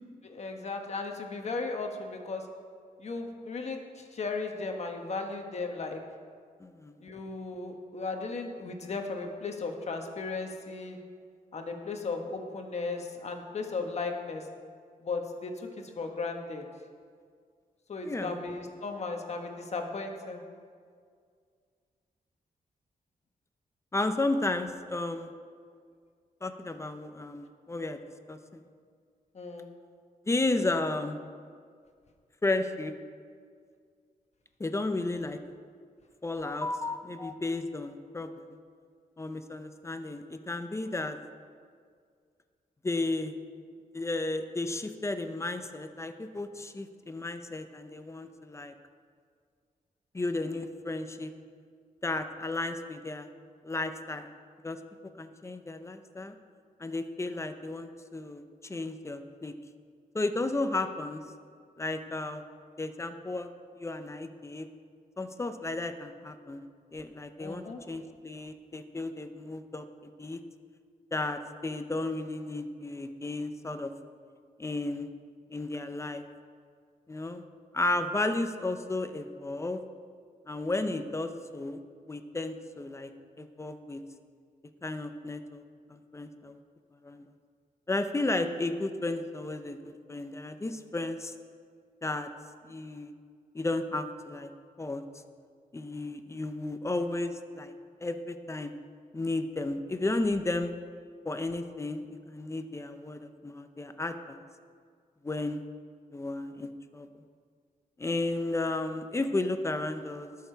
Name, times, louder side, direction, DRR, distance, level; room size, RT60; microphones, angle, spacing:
voice 1, 0.2-2.4 3.0-6.0 7.0-11.0 11.5-14.4 15.0-15.5 16.0-16.6 17.9-20.4 29.3-29.7 67.4-67.8, left 3 dB, 45° left, 3 dB, 1.3 m, -36 dB
voice 2, 6.6-6.9 18.0-18.4 23.9-25.3 26.4-28.0 28.3-28.6 30.3-31.2 32.4-32.9 34.6-35.4 36.2-38.4 39.2-41.2 42.8-43.3 43.9-48.7 50.1-51.3 52.0-53.3 53.6-54.3 54.6-54.8 55.2-56.3 56.8-59.5 60.1-61.2 61.8-62.4 62.8-63.5 63.8-64.7 65.2-69.8 70.2-70.4 71.1-73.9 74.6-75.1 75.5-76.2 77.1-77.4 77.7-79.8 80.5-81.8 82.1-83.1 83.4-84.0 84.8-85.6 85.9-86.6 87.0-87.2 87.9-91.3 92.0-92.3 92.6-93.1 93.5-94.5 94.8-95.0 95.7-97.7 98.0-98.7 99.1-100.7 101.2-104.4 105.2-105.6 106.1-107.1 108.0-110.3, left 2 dB, 20° left, 8 dB, 0.6 m, -33 dB
19.0 x 6.8 x 4.5 m, 2.1 s
wide cardioid pair, 150°, 15 cm